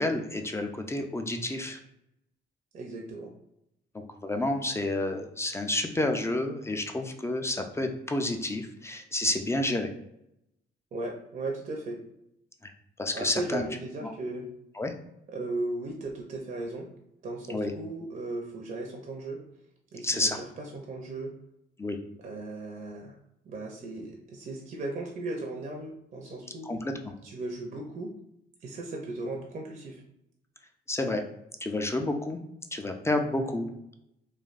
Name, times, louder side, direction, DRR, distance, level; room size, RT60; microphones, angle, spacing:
voice 1, 0.0-1.8 4.2-9.9 12.6-12.7 13.0-13.7 14.0-14.1 14.8-14.9 17.5-17.7 20.0-20.4 21.8-22.0 26.7-27.0 30.9-31.2 31.6-32.4 32.7-33.7, left 2 dB, 15° left, 5 dB, 0.3 m, -29 dB
voice 2, 2.7-3.3 10.9-12.0 13.1-14.4 15.3-16.9 17.2-19.4 19.9-21.3 22.2-23.2 23.5-26.7 27.2-28.1 28.6-30.0, right 2 dB, 40° right, 0 dB, 0.5 m, -36 dB
3.2 x 2.2 x 2.4 m, 0.82 s
cardioid pair, 90°, 20 cm